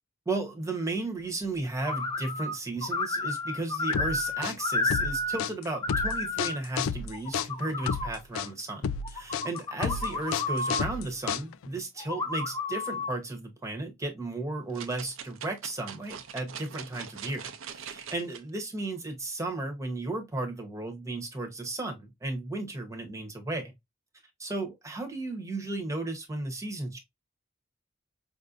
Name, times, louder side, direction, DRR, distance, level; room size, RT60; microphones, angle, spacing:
voice 1, 0.3-23.7 24.4-27.0, right 2 dB, 15° right, 1.0 m, -34 dB
sound 1, 1.8-2.5 2.8-5.4 5.7-6.6 7.1-8.1 9.0-10.9 12.0-13.1, left 2 dB, 20° left, 0.5 m, -31 dB
sound 2, 3.9-11.8, left 6 dB, 90° left, 0.3 m, -32 dB
sound 3, 14.7-18.4 19.0-19.1, right 7 dB, 85° right, 0.6 m, -42 dB
5.3 x 2.6 x 2.5 m
head